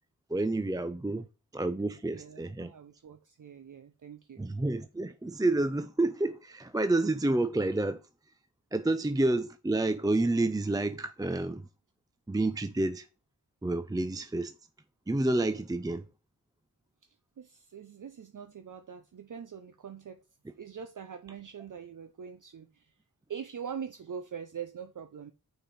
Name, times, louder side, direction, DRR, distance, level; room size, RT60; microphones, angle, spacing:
voice 1, 0.3-1.3 1.5-2.7 4.4-8.0 8.7-11.7 12.3-13.1 13.6-14.5 15.1-16.0, right 2 dB, 10° right, 0.4 m, -29 dB
voice 2, 2.1-4.5 17.4-20.2 20.6-22.9 23.3-25.3, right 7 dB, 55° right, 0.6 m, -43 dB
5.9 x 5.4 x 4.2 m
cardioid pair, 55°, 38 cm